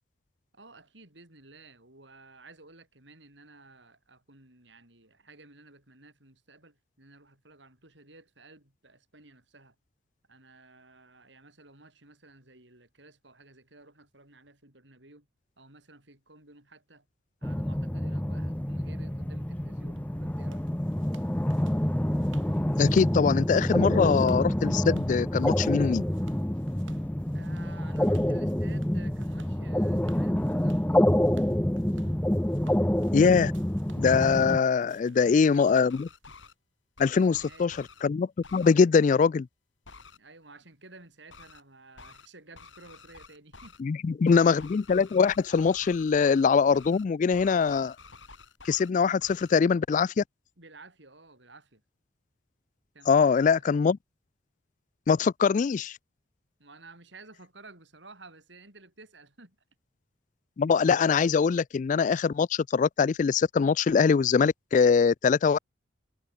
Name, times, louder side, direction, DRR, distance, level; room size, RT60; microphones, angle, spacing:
voice 1, 0.5-9.7 10.3-15.3 15.6-17.1 17.4-20.7 27.3-31.0 35.0-35.9 37.2-37.7 40.1-43.7 50.6-51.8 52.9-53.6 56.6-59.6, right 2 dB, 65° right, 6.3 m, -53 dB
sound 1, 17.4-34.6, equal, 10° left, 0.7 m, -27 dB
sound 2, 20.0-36.5, right 4 dB, 85° right, 7.0 m, -59 dB
voice 2, 22.8-26.0 33.1-33.5 34.0-36.1 37.0-39.5 43.8-48.0 48.6-50.2 53.1-54.0 55.1-56.0 60.6-65.6, left 5 dB, 40° left, 0.3 m, -23 dB
sound 3, 35.8-36.5 37.0-38.0 38.4-38.7 39.8-40.2 41.3-41.6 42.0-42.3 42.5-43.8 44.2-46.4 46.7-47.0 47.3-48.9 49.2-49.6, left 4 dB, 75° left, 4.9 m, -50 dB
head